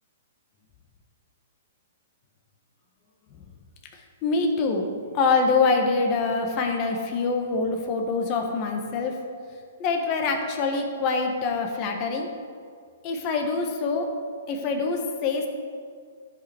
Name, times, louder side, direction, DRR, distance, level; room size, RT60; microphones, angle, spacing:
voice 1, 4.2-4.8 5.1-9.1 9.8-12.3 13.0-14.1 14.5-15.5, left 4 dB, 35° left, 3 dB, 1.5 m, -25 dB
14.0 x 5.5 x 4.6 m, 2.1 s
hypercardioid pair, 135°, 0 cm